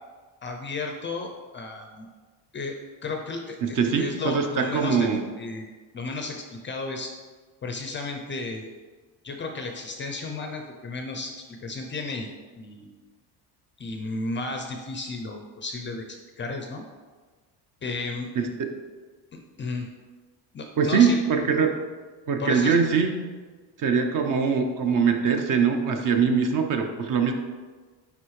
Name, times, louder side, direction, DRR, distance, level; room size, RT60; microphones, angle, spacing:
voice 1, 0.4-2.1 2.5-2.8 3.0-3.6 4.0-5.1 5.4-5.7 5.9-7.1 7.6-8.7 9.2-12.3 12.5-12.9 13.8-16.8 17.8-18.3 19.3-19.9 20.5-21.2 22.4-22.7, left 3 dB, 25° left, 3 dB, 0.4 m, -33 dB
voice 2, 3.6-5.2 18.4-18.7 20.8-21.8 22.3-23.1 23.8-27.3, right 6 dB, 45° right, 5 dB, 0.7 m, -22 dB
9.4 x 3.4 x 3.1 m, 1.4 s
cardioid pair, 140°, 45 cm